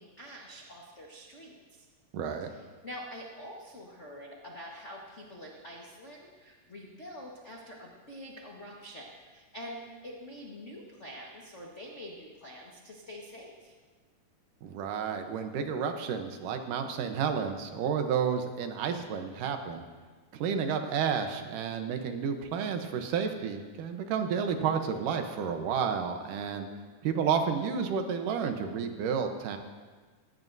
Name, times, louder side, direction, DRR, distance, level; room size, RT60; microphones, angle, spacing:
voice 1, 0.0-1.8 2.5-13.7 26.5-26.9, equal, 55° left, -2 dB, 0.7 m, -46 dB
voice 2, 2.1-2.5 14.6-19.8 20.3-26.7 27.0-29.6, right 7 dB, 80° right, 6 dB, 2.5 m, -31 dB
17.5 x 16.5 x 2.7 m, 1.4 s
omnidirectional pair, 3.8 m